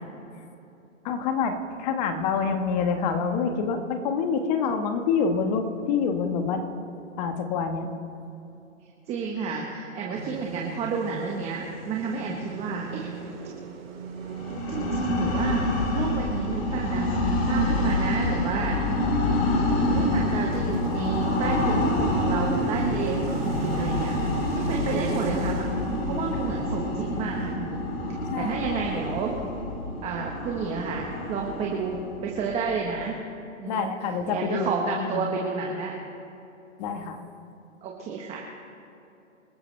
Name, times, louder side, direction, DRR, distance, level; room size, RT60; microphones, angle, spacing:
voice 1, 1.0-6.6 7.2-7.9 24.9-25.3 28.3-28.6 33.7-35.3 36.8-37.2, left 5 dB, 30° left, 6 dB, 1.5 m, -27 dB
voice 2, 9.1-13.1 14.7-17.1 17.4-18.8 19.9-24.2 24.5-27.8 28.4-29.3 30.0-32.0 32.2-33.2 33.6-33.9 34.3-35.9 37.8-38.4, right 5 dB, 15° right, -1 dB, 1.2 m, -31 dB
sound 1, 10.1-27.5, right 5 dB, 45° right, 3.0 m, -39 dB
sound 2, 14.3-33.0, left 1 dB, 50° left, 4.0 m, -27 dB
27.5 x 14.0 x 3.3 m, 2.8 s
hypercardioid pair, 150°, 39 cm